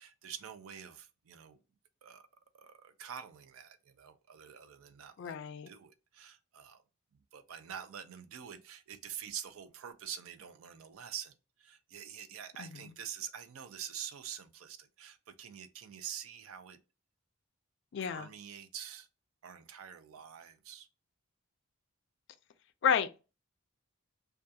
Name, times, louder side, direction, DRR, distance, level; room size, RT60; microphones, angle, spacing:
voice 1, 0.0-1.6 2.0-2.2 2.5-5.4 5.7-6.8 7.3-16.8 18.0-19.1 19.4-20.9, right 8 dB, 75° right, 0.4 m, -46 dB
voice 2, 5.2-5.7 12.6-12.7 17.9-18.3 22.8-23.1, left 7 dB, 55° left, 0.3 m, -30 dB
2.3 x 2.3 x 2.6 m
head